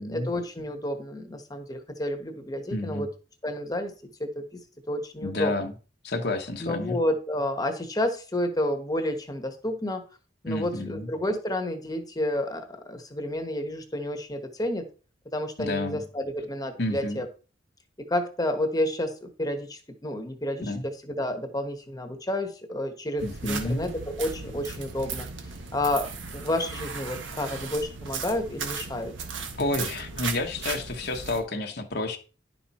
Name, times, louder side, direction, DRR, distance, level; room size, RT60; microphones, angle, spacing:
voice 1, 0.0-3.1 3.4-3.9 4.2-4.6 4.9-5.5 6.6-10.0 10.4-14.9 15.3-17.3 18.0-25.3 25.7-29.1, left 1 dB, 20° left, 1.2 m, -30 dB
voice 2, 2.7-3.1 5.2-5.7 6.0-7.0 10.5-11.1 15.6-16.0 16.8-17.2 20.6-20.8 23.2-23.9 29.6-32.2, left 2 dB, 55° left, 1.2 m, -30 dB
sound 1, 23.2-31.4, right 5 dB, 70° right, 1.6 m, -36 dB
11.0 x 5.7 x 4.3 m
head